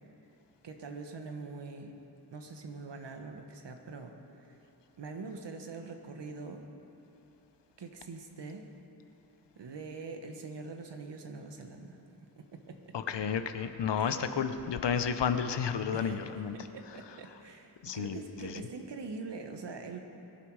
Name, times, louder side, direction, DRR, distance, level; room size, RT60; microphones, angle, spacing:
voice 1, 0.6-2.0 2.3-4.6 5.0-6.6 7.8-8.7 9.5-12.0 12.4-12.9 14.0-14.2 15.9-20.0, right 4 dB, 85° right, 4 dB, 1.5 m, -44 dB
voice 2, 12.9-16.6 17.8-18.7, left 7 dB, 85° left, 9 dB, 0.9 m, -32 dB
22.5 x 11.5 x 4.9 m, 3.0 s
wide cardioid pair, 80°, 41 cm